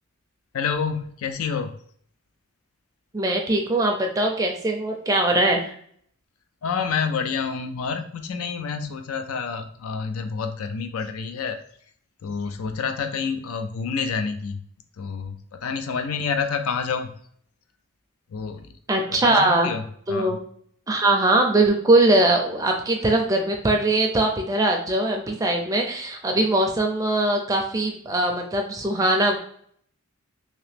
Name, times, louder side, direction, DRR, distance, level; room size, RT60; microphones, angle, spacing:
voice 1, 0.5-1.7 6.6-11.6 12.2-14.6 15.0-17.1 18.3-18.6 19.1-19.8 20.1-20.4, left 5 dB, 70° left, 7 dB, 0.4 m, -28 dB
voice 2, 3.1-5.8 18.9-19.7 20.1-20.4 20.9-29.4, right 2 dB, 15° right, 1 dB, 0.4 m, -21 dB
2.9 x 2.8 x 3.3 m, 0.63 s
head